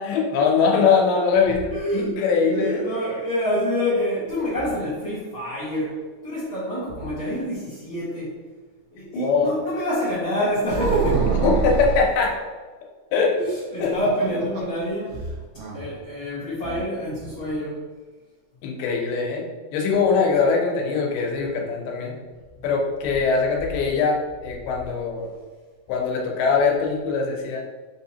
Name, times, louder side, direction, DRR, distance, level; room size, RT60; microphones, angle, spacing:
voice 1, 0.0-2.8 9.1-9.5 11.4-12.4 13.1-13.4 13.8-13.9 16.7-16.8 18.6-22.2 22.6-25.3 25.9-27.6, left 5 dB, 90° left, 0 dB, 2.8 m, -22 dB
voice 2, 0.8-1.3 1.7-8.3 8.9-11.3 13.4-15.2 15.7-17.9, equal, 55° left, -13 dB, 1.4 m, -27 dB
sound 1, 10.7-12.1 13.8-14.8 15.1-15.2 15.6-15.8, right 5 dB, 85° right, 1.6 m, -24 dB
5.9 x 2.7 x 2.8 m, 1.4 s
omnidirectional pair, 4.4 m